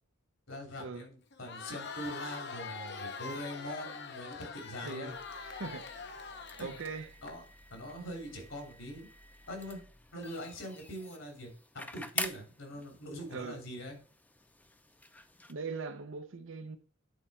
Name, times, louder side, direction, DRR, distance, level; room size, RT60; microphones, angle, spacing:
voice 1, 0.5-5.1 6.6-6.7 7.2-7.4 7.7-9.1 9.5-9.8 10.1-14.0, equal, 75° left, 3.2 m, -43 dB
Crowd, 1.3-7.3, left 5 dB, 60° left, 0.9 m, -43 dB
voice 2, 4.8-5.2 5.5-5.8 6.6-7.1 13.3-13.6 15.5-16.8, right 4 dB, 70° right, 0.7 m, -40 dB
sound 1, 5.1-15.5, left 2 dB, 10° left, 0.5 m, -46 dB
9.1 x 4.4 x 4.2 m
head